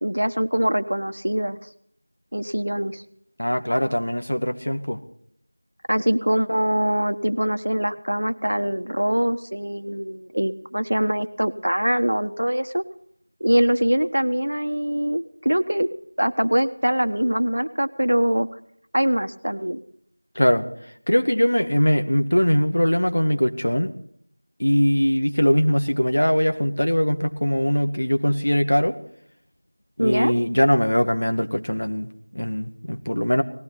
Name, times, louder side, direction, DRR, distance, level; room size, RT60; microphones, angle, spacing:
voice 1, 0.0-1.6 2.3-3.0 5.9-12.8 13.4-15.9 16.2-18.5 18.9-19.8 30.0-30.3, equal, 70° right, 10 dB, 1.2 m, -23 dB
voice 2, 3.4-5.0 20.4-20.7 21.1-23.9 24.6-29.0 30.0-33.4, equal, 70° left, 6 dB, 1.9 m, -21 dB
19.0 x 16.0 x 4.1 m, 0.66 s
figure-of-eight pair, 175°, 0 cm